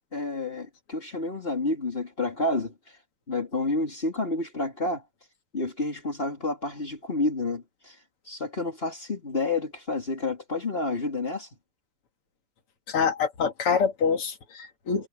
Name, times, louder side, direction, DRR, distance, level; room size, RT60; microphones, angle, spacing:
voice 1, 0.1-2.7 3.3-5.0 5.5-8.0 8.3-11.5, left 2 dB, 25° left, 3.0 m, -29 dB
voice 2, 12.9-15.1, left 6 dB, 80° left, 3.0 m, -26 dB
omnidirectional pair, 2.4 m